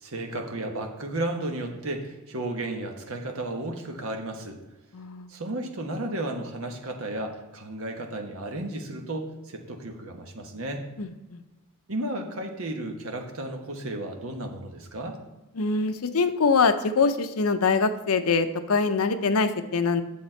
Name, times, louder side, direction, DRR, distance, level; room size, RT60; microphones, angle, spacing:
voice 1, 0.0-4.6 5.3-10.8 11.9-15.2, right 1 dB, 70° right, 3 dB, 1.2 m, -33 dB
voice 2, 4.9-5.3 11.0-11.4 15.6-20.0, left 4 dB, 80° left, 9 dB, 0.7 m, -24 dB
8.6 x 7.3 x 4.4 m, 1.1 s
head